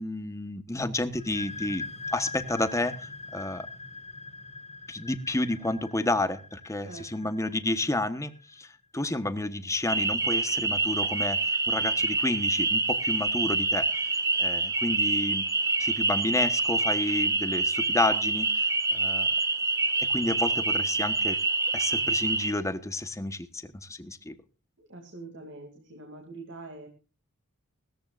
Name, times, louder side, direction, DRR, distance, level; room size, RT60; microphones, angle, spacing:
voice 1, 0.0-3.7 4.9-14.1 14.4-15.5 15.8-19.3 20.0-21.4 21.7-24.4, left 2 dB, 15° left, 11 dB, 1.2 m, -31 dB
sound 1, 1.1-8.6, left 3 dB, 30° left, 1.7 m, -42 dB
voice 2, 6.8-7.3 24.8-26.9, right 2 dB, 60° right, 3 dB, 2.7 m, -44 dB
sound 2, 9.9-22.5, right 3 dB, 15° right, 0.9 m, -26 dB
19.0 x 14.0 x 2.5 m, 0.34 s
head